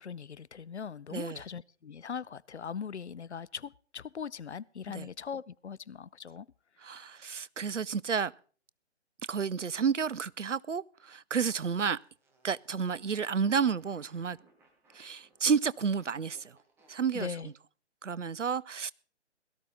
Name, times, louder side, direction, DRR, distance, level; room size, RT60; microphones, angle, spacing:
voice 1, 0.0-6.5 17.1-17.5, left 7 dB, 70° left, 0.6 m, -40 dB
voice 2, 6.8-8.3 9.3-12.0 12.4-14.4 14.9-16.6 16.9-17.3 18.0-18.9, right 6 dB, 85° right, 0.6 m, -31 dB
Fart, 11.4-17.5, right 2 dB, 5° right, 1.3 m, -65 dB
17.5 x 13.5 x 3.8 m
figure-of-eight pair, 140°, 36 cm